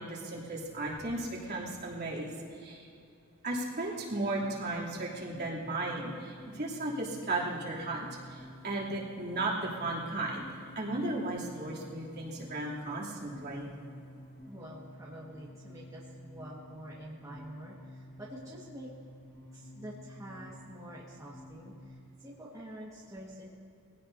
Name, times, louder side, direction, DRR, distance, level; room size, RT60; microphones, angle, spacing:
voice 1, 0.0-2.9 3.4-10.4 10.7-13.7, right 2 dB, 50° right, -5 dB, 3.1 m, -35 dB
sound 1, 4.4-21.9, left 1 dB, 40° left, 4.4 m, -51 dB
voice 2, 14.4-18.9 19.5-23.5, right 1 dB, 15° right, -6 dB, 1.7 m, -47 dB
22.5 x 16.5 x 2.8 m, 2.5 s
head